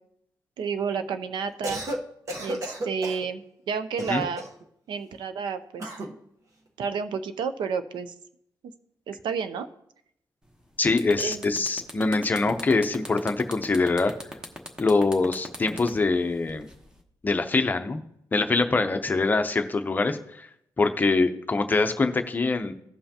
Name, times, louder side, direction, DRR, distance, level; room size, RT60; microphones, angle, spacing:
voice 1, 0.6-1.8 2.4-4.5 4.9-5.9 6.8-8.1 9.1-9.7 11.2-11.4, right 6 dB, 80° right, 10 dB, 0.6 m, -30 dB
Cough, 1.5-2.0 2.3-3.3 4.0-4.6 5.8-6.1, right 1 dB, 40° right, 1.0 m, -33 dB
sound 1, 10.5-10.6 10.9-17.0, equal, 10° right, 1.0 m, -39 dB
voice 2, 10.8-14.1 14.8-16.7 17.2-18.0 18.3-20.5 20.8-22.7, left 3 dB, 25° left, 7 dB, 0.6 m, -24 dB
16.0 x 5.6 x 2.8 m, 0.74 s
wide cardioid pair, 145°, 8 cm